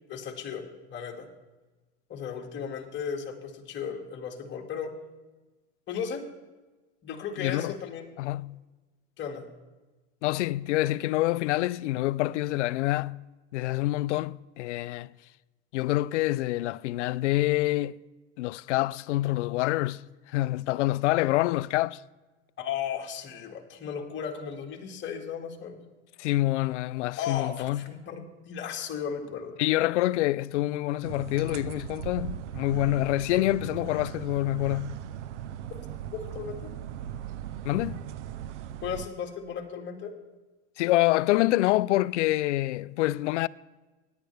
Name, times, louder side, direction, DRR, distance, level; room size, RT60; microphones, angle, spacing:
voice 1, 0.1-1.3 2.1-4.9 5.9-6.2 7.0-8.2 9.2-9.5 22.6-25.8 27.2-29.6 36.3-36.7 38.8-40.1, left 7 dB, 30° left, 2.0 m, -35 dB
voice 2, 7.4-7.8 8.2-8.6 10.2-13.2 13.5-15.1 15.7-18.0 18.4-20.0 20.3-22.0 26.2-27.9 29.6-35.0 37.6-38.0 40.8-43.5, left 17 dB, 85° left, 0.5 m, -26 dB
sound 1, 31.0-39.1, right 10 dB, 90° right, 0.7 m, -38 dB
17.5 x 10.5 x 3.4 m
supercardioid pair, 125°, 35 cm